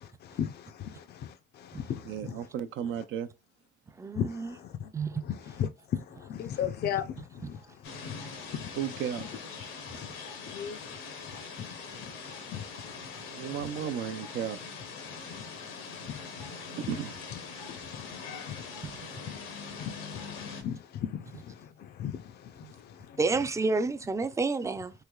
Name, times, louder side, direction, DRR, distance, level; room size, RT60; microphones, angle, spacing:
voice 1, 0.2-2.4 3.0-3.1 4.2-4.9 5.2-7.6 8.1-8.2 9.2-9.3 10.5-10.8 11.6-11.7 12.5-12.6 16.8-16.9 17.3-17.4 17.9-18.1 18.5-18.6 19.8-21.5 21.8-22.2, left 9 dB, 55° left, 0.4 m, -36 dB
voice 2, 2.1-3.3 8.8-9.3 13.3-14.6 16.8-17.2 22.6-22.7, right 9 dB, 80° right, 0.5 m, -34 dB
voice 3, 4.0-4.5 4.9-5.1 7.6-7.7 9.9-10.2 18.8-19.2 23.2-24.9, right 3 dB, 15° right, 0.3 m, -30 dB
sound 1, 7.8-20.6, left 5 dB, 90° left, 0.8 m, -42 dB
3.2 x 2.9 x 2.3 m
cardioid pair, 90°, 20 cm